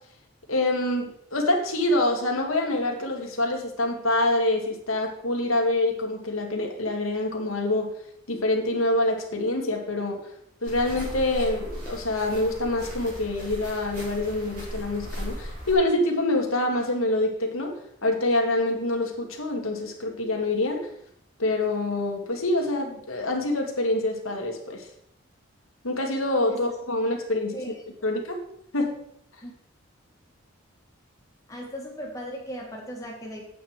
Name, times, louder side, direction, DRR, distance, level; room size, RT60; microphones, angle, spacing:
voice 1, 0.5-7.9 8.3-10.2 10.6-20.9 21.4-24.9 25.8-27.6 28.0-28.4 28.7-28.9, left 2 dB, 90° left, 2 dB, 2.2 m, -26 dB
sound 1, 10.6-15.8, equal, 40° right, 5.0 m, -37 dB
voice 2, 27.5-28.1 29.4-29.5 31.5-33.5, equal, 15° left, -2 dB, 2.4 m, -37 dB
9.4 x 8.4 x 4.7 m, 0.71 s
head